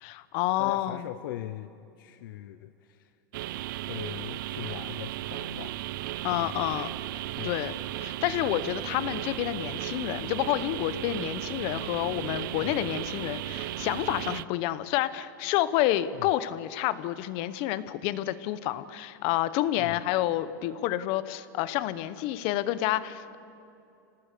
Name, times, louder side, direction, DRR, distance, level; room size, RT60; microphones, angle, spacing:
voice 1, 0.0-1.0 6.2-7.7 8.0-23.4, left 14 dB, 55° left, 15 dB, 1.0 m, -29 dB
voice 2, 0.6-1.7 2.0-3.2 3.9-5.9 6.3-6.7 7.4-7.6 12.6-12.8 16.1-16.3 19.8-20.0, left 13 dB, 75° left, 11 dB, 0.7 m, -40 dB
sound 1, 3.3-14.5, right 15 dB, 75° right, 0.5 m, -35 dB
25.0 x 18.5 x 6.9 m, 2.7 s
supercardioid pair, 130°, 11 cm